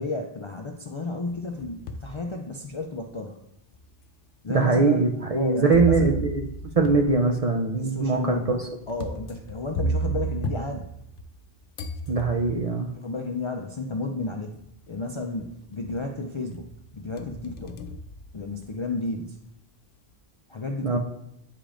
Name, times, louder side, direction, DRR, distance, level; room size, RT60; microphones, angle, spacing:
voice 1, 0.0-3.4 4.4-5.0 5.3-6.2 7.8-10.9 13.0-14.6 14.9-16.7 16.9-17.8 18.3-19.4 20.5-21.0, left 3 dB, 50° left, 2 dB, 0.3 m, -32 dB
sound 1, 1.2-2.1 2.7-2.8 3.7-3.8 5.7-11.4 11.8-12.8 13.9-14.0 14.5-15.0 15.3-16.1 16.5-18.9, right 2 dB, 65° left, 0.7 m, -33 dB
voice 2, 4.5-6.4 6.7-8.6 12.1-12.9 20.8-21.0, right 4 dB, 50° right, 3 dB, 0.5 m, -22 dB
8.5 x 5.0 x 2.5 m, 0.80 s
omnidirectional pair, 1.0 m